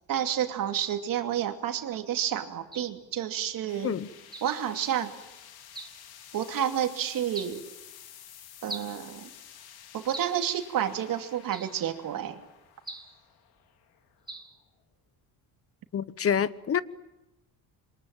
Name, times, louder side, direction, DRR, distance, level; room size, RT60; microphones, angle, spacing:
voice 1, 0.1-3.9 4.4-5.1 6.3-7.6 8.6-9.3 9.9-12.4, right 10 dB, 65° right, 2.9 m, -30 dB
sound 1, 2.7-3.0 4.3-4.6 5.7-6.0 7.3-7.6 8.7-9.0 10.1-10.5 11.5-11.8 12.9-13.2 14.3-14.6, right 2 dB, 10° right, 2.8 m, -41 dB
sound 2, 3.7-14.8, left 9 dB, 80° left, 3.0 m, -51 dB
voice 2, 15.9-16.8, left 8 dB, 40° left, 1.0 m, -27 dB
27.0 x 24.0 x 9.1 m
cardioid pair, 115°, 37 cm